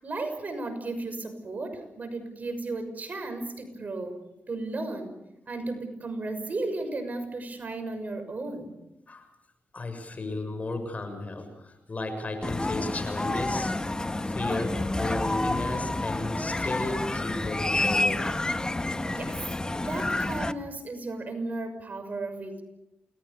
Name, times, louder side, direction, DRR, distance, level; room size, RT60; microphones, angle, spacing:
voice 1, 0.0-4.2 4.5-5.1 5.5-8.7 19.1-19.4 19.9-22.6, right 2 dB, 50° right, 8 dB, 6.3 m, -34 dB
voice 2, 9.7-13.7 14.2-18.2, left 2 dB, 40° left, 8 dB, 6.8 m, -34 dB
sound 1, 12.4-20.5, left 2 dB, 20° left, 1.6 m, -29 dB
29.0 x 20.0 x 7.0 m, 0.88 s
cardioid pair, 55°, 4 cm